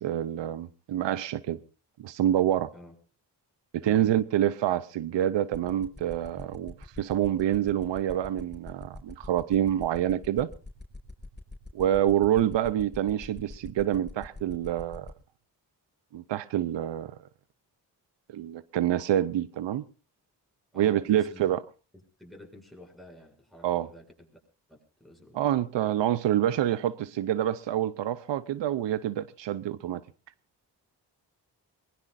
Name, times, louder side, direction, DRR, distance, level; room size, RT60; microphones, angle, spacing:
voice 1, 0.0-1.6 2.0-2.7 3.7-10.5 11.7-15.1 16.1-17.2 18.3-19.9 20.8-21.6 23.6-23.9 25.3-30.0, right 11 dB, 85° right, 0.8 m, -27 dB
sound 1, 5.5-15.1, left 2 dB, 25° left, 4.9 m, -43 dB
voice 2, 20.7-21.4 22.2-24.3 24.7-25.5, left 1 dB, ahead, 7.1 m, -50 dB
23.0 x 20.5 x 2.6 m
cardioid pair, 55°, 42 cm